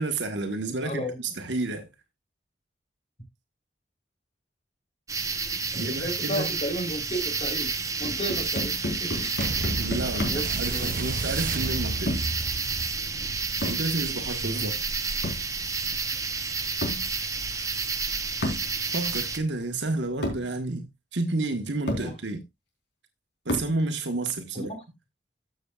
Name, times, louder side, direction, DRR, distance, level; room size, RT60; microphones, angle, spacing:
voice 1, 0.0-1.9 5.8-6.5 9.8-12.1 13.6-14.8 18.9-20.9 21.1-22.4 23.4-24.7, right 2 dB, 75° right, 1.4 m, -30 dB
sound 1, 5.1-19.4, right 4 dB, 20° right, 1.0 m, -30 dB
voice 2, 5.7-7.7 8.0-9.4 10.2-10.9 14.1-14.7 21.9-22.2 24.5-24.8, equal, 40° left, 3.8 m, -34 dB
sound 2, 8.0-10.6 12.1-12.4 13.6-13.9 15.2-15.5 16.8-17.1 18.4-18.7 19.7-19.8 20.2-20.5 21.4-21.5 21.9-22.1 23.5-23.8, left 1 dB, 70° left, 3.9 m, -31 dB
sound 3, 9.4-18.2 18.9-19.0, right 3 dB, 50° right, 0.6 m, -35 dB
14.0 x 6.9 x 2.4 m
head